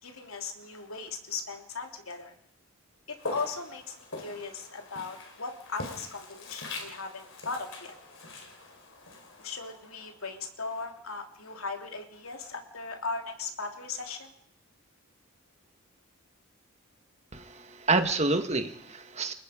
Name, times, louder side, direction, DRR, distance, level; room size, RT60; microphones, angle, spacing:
voice 1, 0.0-2.3 3.1-8.0 9.4-14.3, left 4 dB, 80° left, 4 dB, 3.1 m, -38 dB
Walk footsteps, 3.2-10.3, left 2 dB, 60° left, 4.7 m, -43 dB
voice 2, 17.3-19.3, right 3 dB, 30° right, 7 dB, 1.8 m, -28 dB
30.0 x 18.5 x 5.2 m, 0.67 s
head